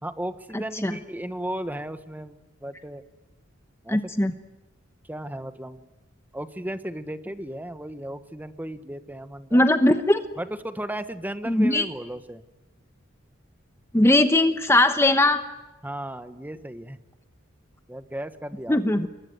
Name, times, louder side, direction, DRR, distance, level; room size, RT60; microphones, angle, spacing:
voice 1, 0.0-3.0 3.8-4.1 5.1-5.9 6.3-9.7 10.4-12.4 15.8-17.0 17.9-19.1, right 1 dB, 10° right, 10 dB, 1.2 m, -35 dB
voice 2, 0.5-0.9 3.9-4.3 9.5-10.2 11.5-11.8 13.9-15.4 18.7-19.1, left 1 dB, 15° left, 8 dB, 1.0 m, -20 dB
27.5 x 22.0 x 9.5 m, 1.1 s
head